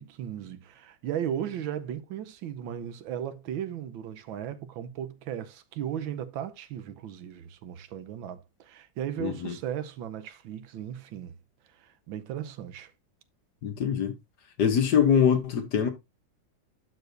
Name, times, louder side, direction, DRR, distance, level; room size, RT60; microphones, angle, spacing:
voice 1, 0.0-11.4 11.7-12.9, right 9 dB, 75° right, 1.5 m, -36 dB
voice 2, 9.2-9.5 13.6-14.1 14.6-15.9, left 7 dB, 60° left, 1.6 m, -23 dB
12.0 x 4.8 x 2.5 m
omnidirectional pair, 2.2 m